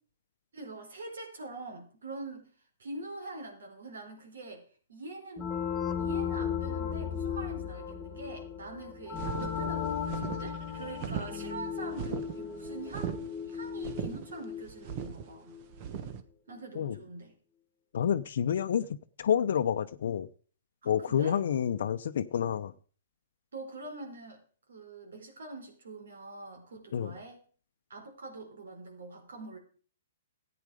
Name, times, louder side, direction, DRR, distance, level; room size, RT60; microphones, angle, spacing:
voice 1, 0.5-2.5 2.8-4.6 4.9-5.5 6.0-15.6 16.5-17.3 20.8-21.7 23.5-24.4 24.7-27.4 27.9-29.6, right 2 dB, 80° right, 4.5 m, -44 dB
sound 1, 5.4-15.8, left 7 dB, 15° left, 2.0 m, -36 dB
sound 2, 9.1-16.2, right 8 dB, 40° right, 1.3 m, -39 dB
voice 2, 17.9-20.3 20.8-22.7 26.9-27.1, left 8 dB, 65° left, 0.7 m, -29 dB
14.0 x 8.7 x 5.0 m
hypercardioid pair, 140°, 0 cm